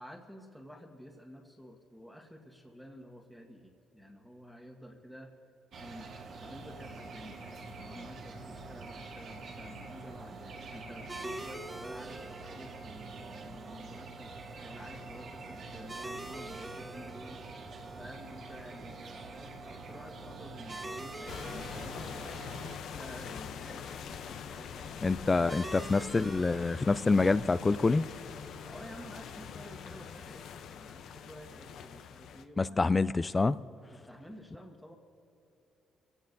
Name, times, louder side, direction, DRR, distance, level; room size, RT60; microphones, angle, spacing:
voice 1, 0.0-5.3 5.8-6.1 6.4-14.3 14.6-17.4 18.0-22.0 22.9-23.8 24.1-25.4 28.7-32.9 33.9-34.9, equal, ahead, 0 dB, 1.4 m, -50 dB
sound 1, 5.7-22.8, right 3 dB, 70° right, 1.5 m, -46 dB
sound 2, 11.1-30.2, right 1 dB, 15° right, 1.1 m, -48 dB
sound 3, 21.3-32.4, left 7 dB, 75° left, 0.6 m, -44 dB
voice 2, 25.0-28.1 32.6-33.6, left 3 dB, 25° left, 15 dB, 0.4 m, -26 dB
28.5 x 17.0 x 2.7 m, 2.6 s
cardioid pair, 90°, 0 cm